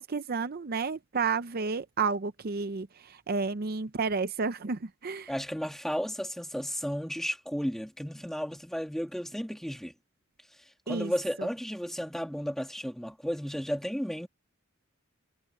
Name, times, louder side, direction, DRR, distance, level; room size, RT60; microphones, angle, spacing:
voice 1, 0.0-5.3 10.9-11.1 11.4-11.5, right 4 dB, 45° right, 0.6 m, -31 dB
voice 2, 5.3-9.9 10.9-14.3, equal, ahead, 2.1 m, -33 dB
head